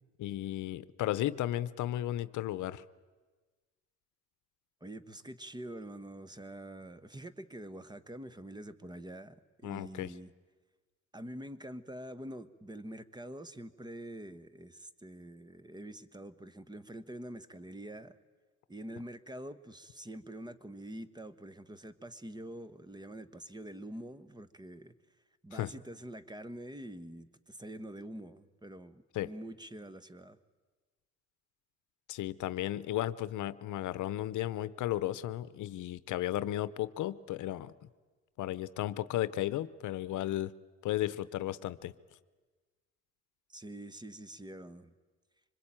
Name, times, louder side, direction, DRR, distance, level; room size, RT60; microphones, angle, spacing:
voice 1, 0.2-2.8 9.6-10.1 25.5-25.7 29.1-29.3 32.1-37.7 38.4-40.5 40.8-41.9, left 14 dB, 80° left, 16 dB, 0.7 m, -34 dB
voice 2, 4.8-10.3 11.1-18.2 18.7-24.9 25.4-30.4 43.5-44.9, right 1 dB, 15° right, 14 dB, 1.2 m, -46 dB
25.0 x 21.5 x 8.9 m, 1.4 s
cardioid pair, 90°, 30 cm